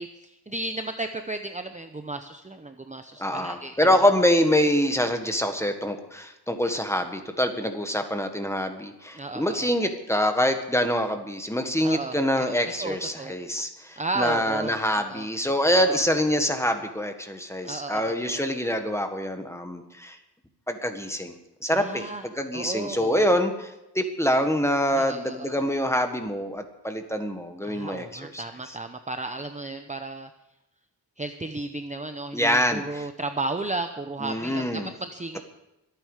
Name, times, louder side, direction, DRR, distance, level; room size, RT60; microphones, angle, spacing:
voice 1, 0.0-4.0 9.1-9.7 11.8-13.4 14.0-15.3 15.8-16.0 17.6-18.4 21.7-22.2 22.5-23.3 24.9-25.6 27.6-30.3 31.2-34.7 35.0-35.4, right 2 dB, 20° right, 7 dB, 0.7 m, -34 dB
voice 2, 3.2-20.2 20.7-21.3 21.6-28.8 32.3-33.1 34.2-34.9, equal, 5° left, 6 dB, 1.5 m, -25 dB
24.0 x 9.3 x 4.9 m, 0.90 s
wide cardioid pair, 120°, 40 cm